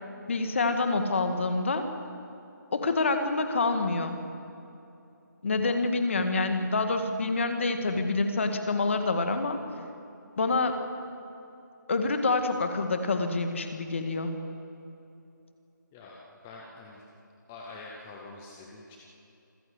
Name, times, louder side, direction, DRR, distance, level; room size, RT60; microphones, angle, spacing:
voice 1, 0.3-1.9 2.7-4.2 5.4-9.6 10.4-10.8 11.9-14.3, left 3 dB, 40° left, 7 dB, 1.9 m, -27 dB
voice 2, 16.4-17.0 17.5-19.0, left 3 dB, 5° left, -2 dB, 0.4 m, -45 dB
26.5 x 15.0 x 8.0 m, 2.8 s
hypercardioid pair, 175°, 11 cm